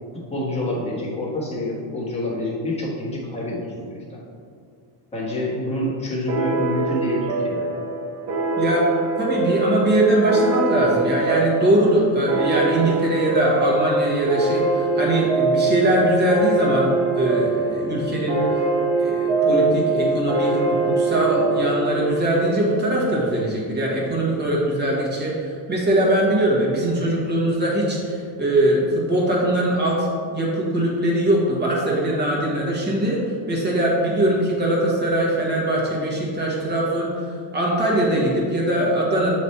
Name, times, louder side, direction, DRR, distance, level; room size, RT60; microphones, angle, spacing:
voice 1, 0.3-4.2 5.1-7.7, left 1 dB, 15° left, -5 dB, 1.3 m, -27 dB
sound 1, 6.3-23.4, right 3 dB, 55° right, 1.0 m, -23 dB
voice 2, 8.6-8.9 9.2-16.9 17.2-18.4 19.0-33.2 33.5-39.3, right 1 dB, 20° right, -4 dB, 1.4 m, -21 dB
7.1 x 3.2 x 4.2 m, 2.3 s
cardioid pair, 135°, 48 cm